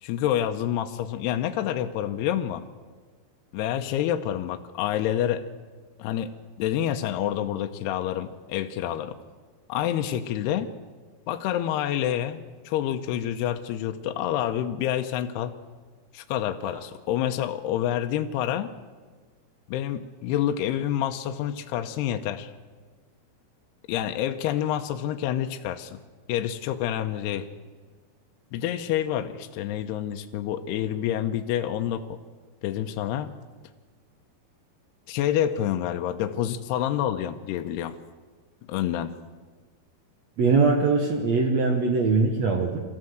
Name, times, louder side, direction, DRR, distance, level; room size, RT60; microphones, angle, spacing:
voice 1, 0.0-2.6 3.5-5.4 6.0-6.3 6.6-9.2 9.7-10.7 11.3-15.5 16.1-18.7 19.7-22.5 23.9-26.0 26.3-27.5 28.5-32.2 32.6-33.3 35.1-38.0 38.7-39.2, left 11 dB, 80° left, 6 dB, 2.7 m, -28 dB
voice 2, 40.4-42.8, right 4 dB, 65° right, 4 dB, 1.8 m, -22 dB
22.5 x 15.0 x 7.9 m, 1.5 s
omnidirectional pair, 5.0 m